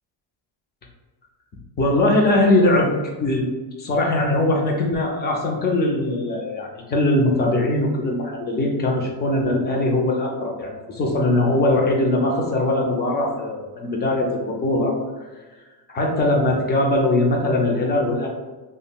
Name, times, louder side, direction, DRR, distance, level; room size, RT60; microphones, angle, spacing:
voice 1, 1.8-2.9 3.2-3.5 3.8-15.0 15.9-18.3, left 1 dB, 25° left, 0 dB, 0.4 m, -21 dB
3.5 x 2.1 x 2.3 m, 1.3 s
cardioid pair, 140°, 46 cm